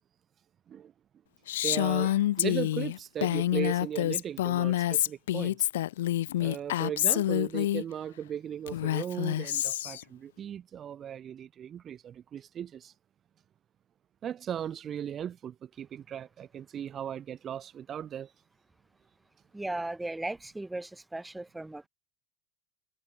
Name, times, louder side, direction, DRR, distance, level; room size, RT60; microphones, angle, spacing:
Female speech woman speaking, 1.5-7.8 8.7-10.0, left 14 dB, 75° left, 0.7 m, -27 dB
voice 1, 1.6-5.7 6.4-12.9 14.2-18.3, right 9 dB, 35° right, 2.0 m, -37 dB
voice 2, 19.5-21.9, right 2 dB, 10° right, 2.0 m, -36 dB
hypercardioid pair, 80°, 0 cm